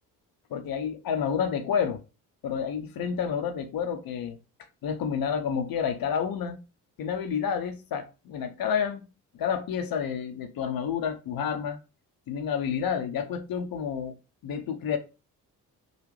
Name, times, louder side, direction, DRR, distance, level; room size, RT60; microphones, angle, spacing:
voice 1, 0.5-2.0 2.4-4.4 4.8-6.6 7.0-9.1 9.3-11.8 12.3-14.1 14.4-15.0, left 7 dB, 50° left, 0.7 m, -29 dB
3.8 x 2.4 x 3.0 m
hypercardioid pair, 40°, 46 cm